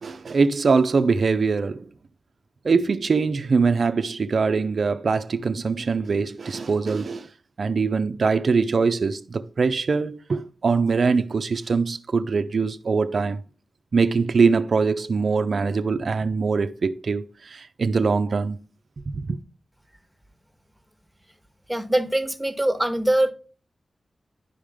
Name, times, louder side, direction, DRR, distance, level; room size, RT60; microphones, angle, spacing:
voice 1, 0.0-1.9 2.6-7.3 7.6-13.4 13.9-18.6 19.1-19.4, right 4 dB, 65° right, 0.5 m, -22 dB
voice 2, 21.7-23.3, right 1 dB, 5° right, 1.5 m, -22 dB
10.5 x 5.0 x 3.6 m
cardioid pair, 60°, 0 cm